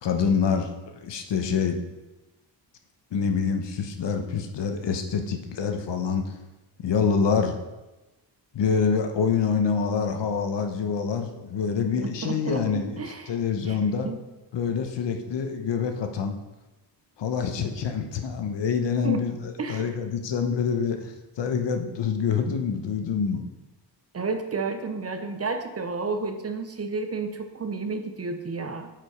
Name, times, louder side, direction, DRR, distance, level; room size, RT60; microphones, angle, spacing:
voice 1, 0.0-1.8 3.1-6.3 6.8-7.6 8.5-14.1 14.5-16.3 17.2-23.4, left 6 dB, 75° left, 6 dB, 1.0 m, -26 dB
voice 2, 12.0-13.3 13.7-13.8 14.0-14.2 19.0-19.2 19.6-19.9 24.1-28.9, right 4 dB, 35° right, 8 dB, 0.6 m, -31 dB
7.5 x 5.1 x 4.9 m, 1.1 s
wide cardioid pair, 125°, 43 cm